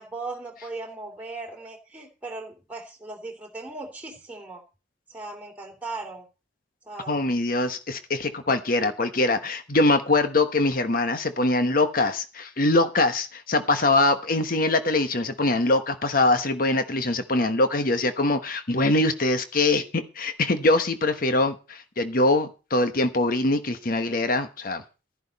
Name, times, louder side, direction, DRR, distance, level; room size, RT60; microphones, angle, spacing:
voice 1, 0.0-4.6 5.1-6.2 6.8-7.2, right 3 dB, 10° right, 0 dB, 3.2 m, -38 dB
voice 2, 7.1-24.8, left 2 dB, 50° left, 9 dB, 1.2 m, -23 dB
12.0 x 11.0 x 4.2 m, 0.32 s
head